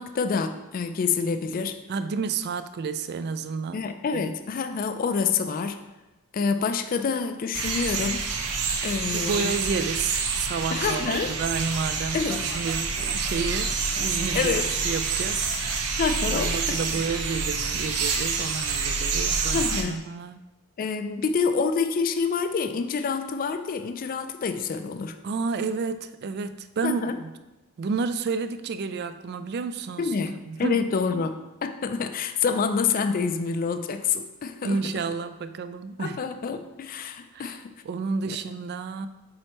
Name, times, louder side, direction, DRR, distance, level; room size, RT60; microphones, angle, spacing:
voice 1, 0.0-1.8 3.7-5.8 6.3-8.2 8.8-9.5 10.7-11.3 12.1-12.4 14.3-14.7 16.0-16.8 19.5-20.0 20.8-25.2 26.8-27.2 30.0-34.8 36.0-37.6 38.2-38.4, left 5 dB, 40° left, 9 dB, 0.3 m, -27 dB
voice 2, 1.9-3.9 4.1-4.3 9.1-14.5 14.8-15.5 15.8-15.9 16.3-20.4 25.2-27.3 27.8-30.1 30.5-30.9 34.6-36.2 37.3-37.6 37.8-39.1, right 5 dB, 45° right, 11 dB, 0.3 m, -30 dB
sound 1, 7.5-19.8, right 4 dB, 85° right, 0.7 m, -27 dB
7.7 x 4.3 x 2.9 m, 1.0 s
head